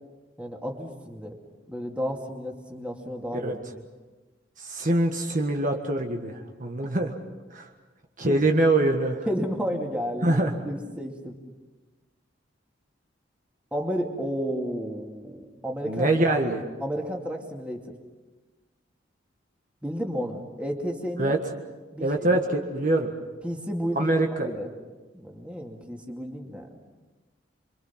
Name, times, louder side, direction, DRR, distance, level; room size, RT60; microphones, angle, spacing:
voice 1, 0.4-1.4 1.7-3.8 8.3-8.4 9.3-11.4 13.7-16.3 16.8-17.9 19.8-21.3 21.9-22.4 23.4-24.1 24.4-24.7 25.1-26.7, equal, 5° right, 1 dB, 2.4 m, -32 dB
voice 2, 4.6-7.1 7.5-7.7 8.2-9.3 10.2-10.5 15.9-16.6 21.2-21.4 22.0-23.1 23.9-24.5, right 2 dB, 45° right, 2 dB, 1.6 m, -24 dB
28.0 x 24.0 x 5.9 m, 1.2 s
head